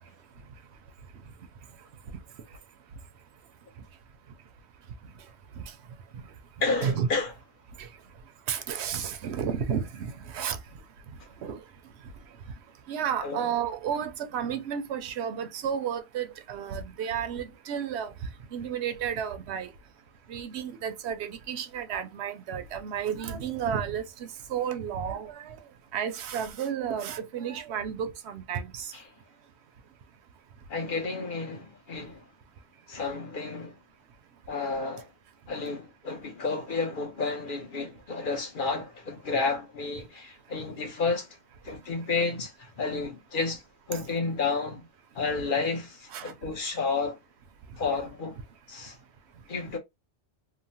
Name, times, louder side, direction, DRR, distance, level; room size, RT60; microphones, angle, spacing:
voice 1, 6.6-7.3 13.2-13.5 30.7-32.3 32.9-33.8 34.5-35.1 35.5-41.3 41.6-43.6 43.9-44.8 45.1-47.2 47.8-48.4 48.7-49.0 49.5-49.8, left 4 dB, 55° left, 1.0 m, -31 dB
voice 2, 8.5-10.6 11.4-11.6 12.9-18.1 18.5-19.7 20.3-24.0 24.5-25.6 25.9-28.9 38.7-38.8 43.9-44.0 46.1-46.3, right 8 dB, 80° right, 0.8 m, -32 dB
2.9 x 2.1 x 2.7 m
omnidirectional pair, 1.1 m